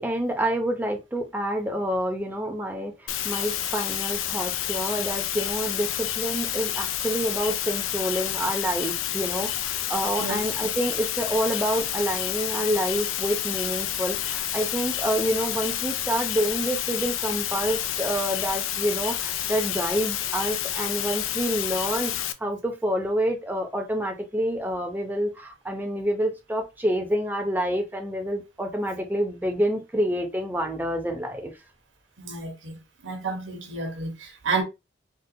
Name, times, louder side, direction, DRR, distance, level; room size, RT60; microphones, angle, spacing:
voice 1, 0.0-31.5, equal, 10° right, 0.6 m, -28 dB
sound 1, 3.1-22.3, left 11 dB, 90° left, 0.4 m, -29 dB
voice 2, 32.2-32.8 33.0-34.6, right 4 dB, 70° right, 1.0 m, -30 dB
3.6 x 2.3 x 2.7 m
head